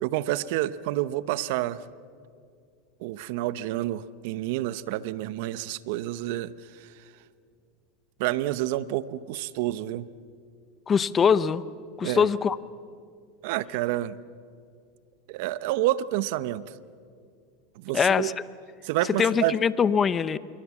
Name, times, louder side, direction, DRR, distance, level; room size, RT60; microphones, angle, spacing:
voice 1, 0.0-1.8 3.0-7.0 8.2-10.1 12.0-12.3 13.4-14.2 15.3-16.6 17.8-18.3 18.8-19.6, right 15 dB, 65° right, 16 dB, 0.9 m, -29 dB
voice 2, 10.9-11.6 12.0-12.6 17.9-18.3 19.2-20.4, left 6 dB, 25° left, 16 dB, 0.8 m, -22 dB
27.0 x 23.0 x 7.3 m, 2.3 s
supercardioid pair, 110°, 0 cm